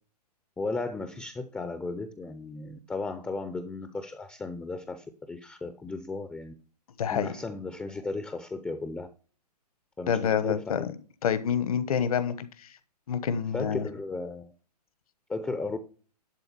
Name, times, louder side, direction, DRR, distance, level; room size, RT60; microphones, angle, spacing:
voice 1, 0.6-6.5 7.1-9.1 10.0-10.9 13.5-14.5 15.3-15.8, left 3 dB, 5° left, 9 dB, 0.6 m, -35 dB
voice 2, 7.0-7.3 10.1-10.9 11.2-12.7 13.1-13.9, left 8 dB, 60° left, 14 dB, 1.2 m, -27 dB
11.0 x 3.9 x 6.8 m, 0.39 s
hypercardioid pair, 125°, 21 cm